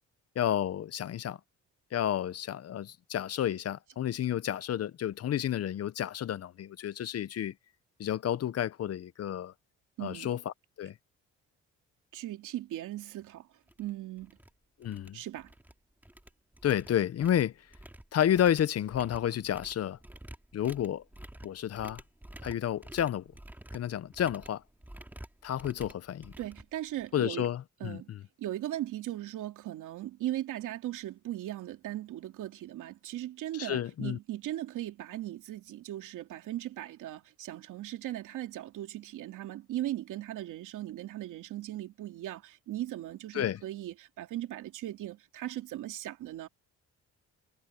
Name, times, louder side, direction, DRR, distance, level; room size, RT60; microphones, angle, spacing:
voice 1, 0.4-1.4 1.9-7.5 8.0-9.5 10.0-10.4 10.8-10.9 14.8-15.2 16.6-17.5 18.1-20.0 20.5-21.0 21.4-22.0 22.4-23.2 23.7-24.6 25.4-26.3 27.1-28.2 33.6-34.2 43.3-43.6, left 10 dB, 55° left, 0.8 m, -30 dB
voice 2, 10.0-10.3 12.1-13.5 13.8-14.4 15.1-15.5 26.4-27.5 27.8-28.1 28.4-46.5, right 14 dB, 85° right, 2.9 m, -38 dB
sound 1, 13.1-13.2 13.7-13.9 14.2-14.5 14.8-15.7 16.0-27.3, right 1 dB, 5° right, 2.7 m, -50 dB
cardioid pair, 90°, 30 cm